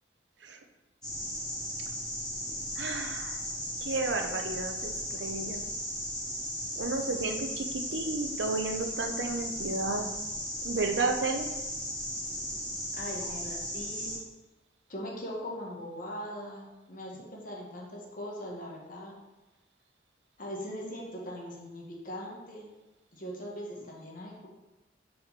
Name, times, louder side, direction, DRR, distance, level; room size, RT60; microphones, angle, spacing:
sound 1, 1.0-14.2, equal, 5° left, 2.5 m, -36 dB
voice 1, 2.8-3.4 3.8-5.6 6.8-10.1 10.6-11.5, right 3 dB, 75° right, 5 dB, 0.8 m, -32 dB
voice 2, 12.9-14.2 14.9-19.1 20.4-22.7 23.1-24.5, equal, 50° left, -2 dB, 1.7 m, -40 dB
6.3 x 4.9 x 5.2 m, 1.1 s
head